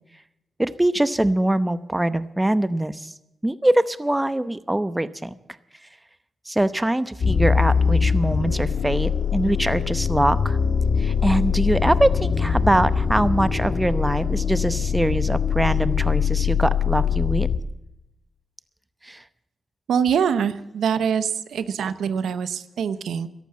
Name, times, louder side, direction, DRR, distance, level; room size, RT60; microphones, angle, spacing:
voice 1, 0.6-3.1 3.4-5.3 6.5-10.6 11.0-17.5 19.1-19.2, right 1 dB, 10° right, 14 dB, 0.8 m, -23 dB
sound 1, 7.2-17.6, left 6 dB, 65° left, 1.3 m, -22 dB
voice 2, 19.9-23.3, right 7 dB, 85° right, 13 dB, 0.8 m, -24 dB
14.0 x 11.5 x 7.5 m, 0.87 s
cardioid pair, 70°, 0 cm